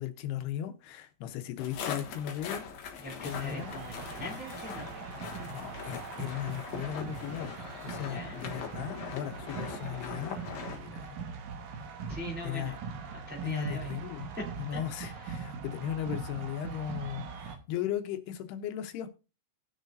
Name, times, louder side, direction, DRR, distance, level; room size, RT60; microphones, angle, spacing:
voice 1, 0.0-2.7 3.2-3.7 5.5-7.6 7.8-11.2 12.4-12.8 13.4-14.3 14.6-19.1, left 11 dB, 90° left, 3.0 m, -37 dB
sound 1, 1.6-10.8, left 6 dB, 55° left, 2.2 m, -41 dB
voice 2, 3.0-5.2 8.0-8.4 12.1-12.8 13.1-13.9 14.3-14.4 14.7-15.3, left 1 dB, 5° right, 2.6 m, -42 dB
sound 2, 3.2-17.6, right 5 dB, 65° right, 2.2 m, -41 dB
19.0 x 6.5 x 2.6 m
omnidirectional pair, 4.5 m